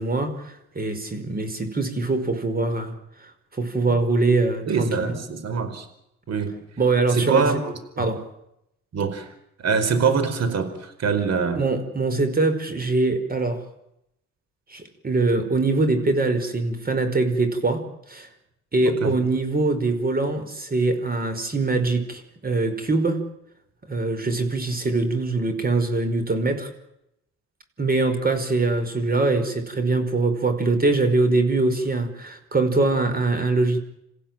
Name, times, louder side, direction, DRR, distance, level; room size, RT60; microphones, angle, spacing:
voice 1, 0.0-2.9 3.2-5.1 6.8-7.5 8.0-8.2 11.5-13.6 14.7-18.3 18.7-23.2 23.9-26.7 27.8-33.8, right 3 dB, 30° right, 9 dB, 5.0 m, -23 dB
voice 2, 4.7-5.9 6.3-6.6 7.1-8.1 8.9-9.3 9.6-11.6 18.8-19.1, right 5 dB, 60° right, 10 dB, 4.7 m, -24 dB
28.0 x 16.0 x 9.1 m, 0.81 s
cardioid pair, 90°, 30 cm